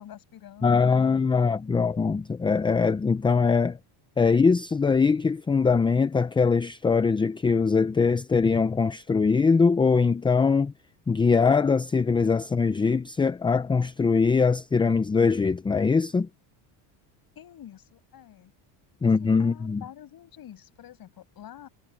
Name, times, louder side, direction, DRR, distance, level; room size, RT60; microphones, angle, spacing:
voice 1, 0.0-1.9 17.4-18.5 19.0-21.7, left 11 dB, 45° left, 7.4 m, -47 dB
voice 2, 0.6-3.8 4.2-10.7 11.1-16.3 19.0-19.8, left 5 dB, 10° left, 0.4 m, -22 dB
cardioid pair, 130°, 48 cm